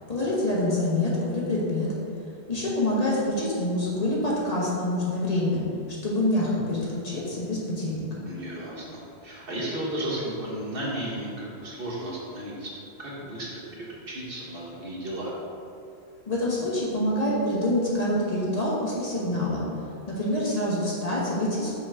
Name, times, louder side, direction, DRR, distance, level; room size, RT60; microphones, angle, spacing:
voice 1, 0.1-1.9 2.5-5.6 6.0-8.3 16.3-19.6 20.1-21.7, left 1 dB, 40° left, -7 dB, 1.2 m, -26 dB
voice 2, 8.3-12.7 13.0-15.3, right 1 dB, 60° right, -5 dB, 1.3 m, -34 dB
5.7 x 4.8 x 3.5 m, 2.6 s
omnidirectional pair, 1.1 m